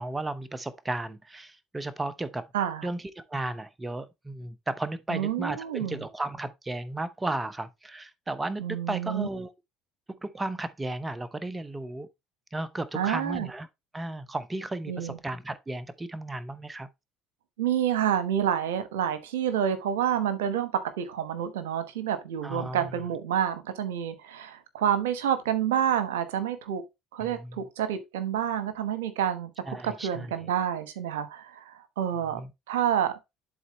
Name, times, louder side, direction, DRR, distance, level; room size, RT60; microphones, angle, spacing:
voice 1, 0.0-2.5 2.8-9.5 10.1-12.1 12.5-13.7 13.9-16.9 22.4-23.0 27.2-27.6 29.7-30.5 32.3-32.5, right 2 dB, 20° right, 0.7 m, -34 dB
voice 2, 2.5-2.9 5.1-6.0 8.6-9.3 12.9-13.5 14.9-15.2 17.6-26.8 27.1-32.4 32.7-33.2, right 9 dB, 85° right, 1.0 m, -28 dB
11.0 x 4.0 x 3.0 m
hypercardioid pair, 70°, 0 cm